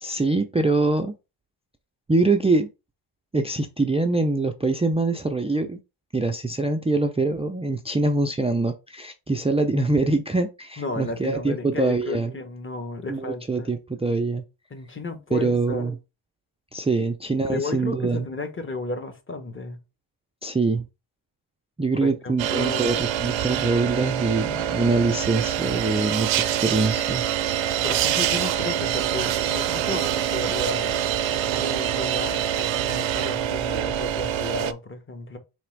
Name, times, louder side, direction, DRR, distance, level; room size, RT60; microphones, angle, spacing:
voice 1, 0.0-1.1 2.1-2.7 3.3-5.8 6.1-12.3 13.1-14.4 15.3-16.0 16.7-18.3 20.4-20.8 21.8-27.2, right 3 dB, 15° right, 0.3 m, -24 dB
voice 2, 10.8-13.7 14.7-15.9 17.5-19.8 21.9-23.0 27.8-31.0 31.6-35.4, left 3 dB, 25° left, 0.9 m, -33 dB
sound 1, 22.4-34.7, right 10 dB, 70° right, 0.5 m, -25 dB
4.1 x 3.4 x 3.1 m
cardioid pair, 95°, 48 cm